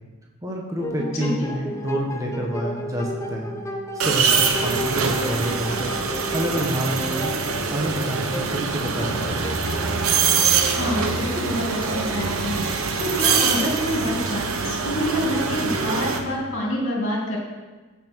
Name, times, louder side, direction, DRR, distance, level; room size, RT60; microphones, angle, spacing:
voice 1, 0.4-5.9 6.3-7.3 7.7-9.7, equal, 15° right, -1 dB, 1.2 m, -28 dB
sound 1, 0.8-11.3, left 1 dB, 15° left, 0.6 m, -34 dB
voice 2, 1.2-1.5 10.7-17.4, equal, 55° left, -3 dB, 2.8 m, -27 dB
sound 2, 4.0-16.2, right 5 dB, 70° right, 1.1 m, -24 dB
15.0 x 6.0 x 4.6 m, 1.3 s
head